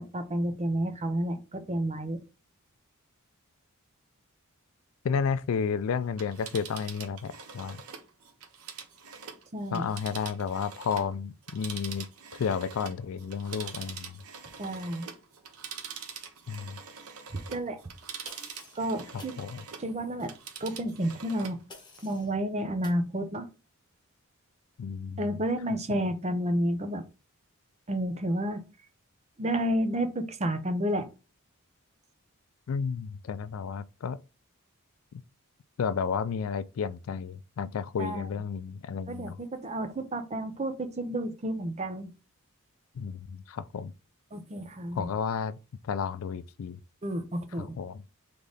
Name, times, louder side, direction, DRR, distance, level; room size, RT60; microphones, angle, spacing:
voice 1, 0.0-2.2 9.5-9.8 14.6-15.1 17.3-17.8 18.8-19.3 19.8-21.6 22.0-23.5 25.2-27.0 27.9-28.6 29.4-31.1 38.0-38.3 39.1-42.1 44.3-45.1 47.0-47.8, right 1 dB, 30° right, 0.7 m, -31 dB
voice 2, 5.0-7.8 9.7-12.1 12.3-14.2 16.5-16.8 19.1-19.6 24.8-25.3 25.9-26.0 32.7-34.2 35.1-35.2 35.8-39.4 43.0-43.9 44.9-45.6 45.8-46.8 47.6-48.0, left 6 dB, 65° left, 0.3 m, -32 dB
Telephone, 6.0-11.1 11.4-19.9 20.2-21.6 22.0-22.1, right 7 dB, 85° right, 0.8 m, -44 dB
sound 1, 18.2-18.8 19.2-19.4 21.7-22.3 22.8-23.0, left 3 dB, 20° left, 1.4 m, -50 dB
3.7 x 3.4 x 4.0 m
head